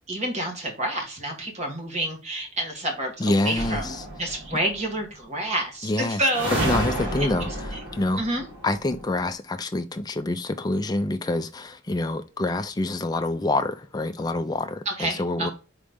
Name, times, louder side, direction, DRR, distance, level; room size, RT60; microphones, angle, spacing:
voice 1, 0.1-6.5 8.2-8.4 14.8-15.5, right 1 dB, 35° right, 1.5 m, -28 dB
voice 2, 3.2-4.0 5.8-6.2 6.5-8.2 8.6-15.5, left 2 dB, 20° left, 0.4 m, -27 dB
sound 1, 3.6-4.7 6.3-9.2, right 1 dB, 75° right, 1.8 m, -30 dB
4.0 x 3.2 x 3.5 m
head